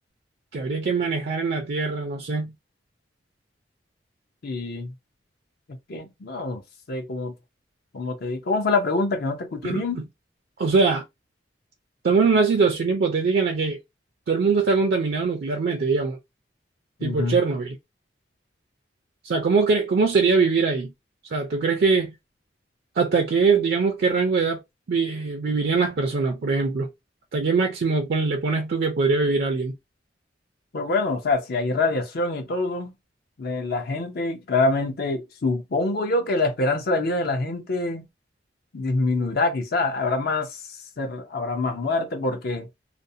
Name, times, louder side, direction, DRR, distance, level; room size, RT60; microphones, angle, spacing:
voice 1, 0.5-2.5 9.6-10.0 10.6-11.0 12.0-13.8 14.3-16.2 17.0-17.8 19.2-20.9 21.3-22.1 23.0-24.6 24.9-26.9 27.3-29.7, right 4 dB, 60° right, 0.4 m, -22 dB
voice 2, 4.4-4.9 5.7-6.6 6.9-7.3 7.9-10.0 17.0-17.4 30.7-32.9 33.4-38.1 38.7-42.7, left 3 dB, 55° left, 0.5 m, -25 dB
2.5 x 2.0 x 2.6 m
head